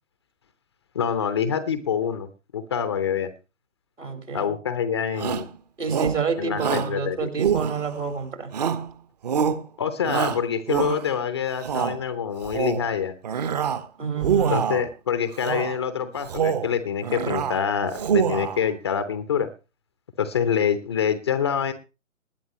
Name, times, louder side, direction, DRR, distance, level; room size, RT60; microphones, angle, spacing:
voice 1, 0.9-3.3 4.3-5.5 6.4-7.3 9.8-13.1 14.5-19.5 20.2-21.7, left 7 dB, 20° left, 12 dB, 0.7 m, -26 dB
voice 2, 4.0-4.5 5.8-8.5 14.0-14.7, right 5 dB, 65° right, 7 dB, 4.4 m, -28 dB
Shout, 5.1-5.5 5.9-6.2 6.6-6.9 7.4-8.1 8.5-8.9 9.2-9.6 10.1-11.2 11.6-12.0 12.4-12.9 13.2-13.9 14.2-14.9 15.4-15.8 16.2-16.7 17.0-17.6 17.9-18.6, right 8 dB, 30° right, 1.1 m, -25 dB
20.0 x 11.0 x 3.0 m, 0.31 s
figure-of-eight pair, 135°, 40 cm